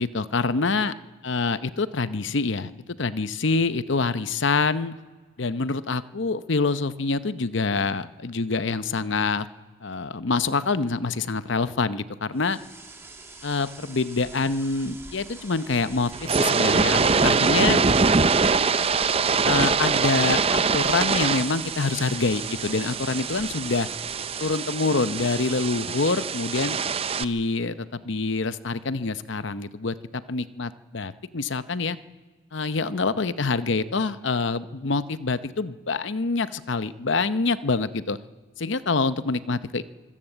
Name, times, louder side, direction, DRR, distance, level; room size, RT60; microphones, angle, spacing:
voice 1, 0.0-0.9 1.2-2.7 3.0-4.9 5.4-9.5 9.8-12.6 13.4-17.8 19.4-23.9 24.4-26.8 27.2-32.0 32.5-38.2 38.6-39.8, left 3 dB, 60° left, 13 dB, 0.8 m, -26 dB
sound 1, 12.3-24.9, right 3 dB, 10° right, 2.5 m, -45 dB
sound 2, 16.1-27.2, right 4 dB, 25° right, 0.5 m, -23 dB
24.5 x 16.0 x 8.0 m, 1.4 s
head